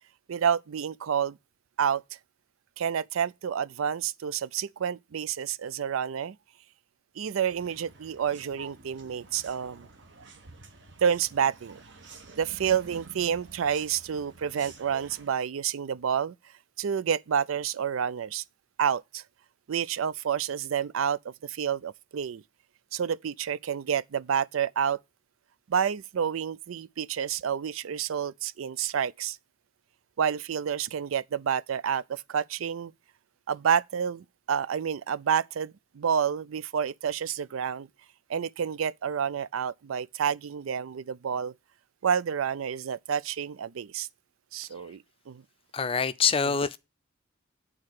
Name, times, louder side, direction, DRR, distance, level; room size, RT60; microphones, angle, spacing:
voice 1, 0.3-1.4 1.8-2.0 2.8-6.4 7.2-9.9 11.0-11.8 12.4-16.3 16.8-18.4 18.8-19.2 19.7-22.4 22.9-25.0 25.7-29.4 30.2-32.9 33.5-37.9 38.3-41.5 42.0-44.1 44.5-45.4 46.4-46.6, right 8 dB, 85° right, 0.4 m, -29 dB
sound 1, 7.5-15.3, right 4 dB, 60° right, 1.4 m, -49 dB
voice 2, 45.7-46.8, left 6 dB, 25° left, 0.5 m, -25 dB
8.7 x 4.3 x 6.4 m
head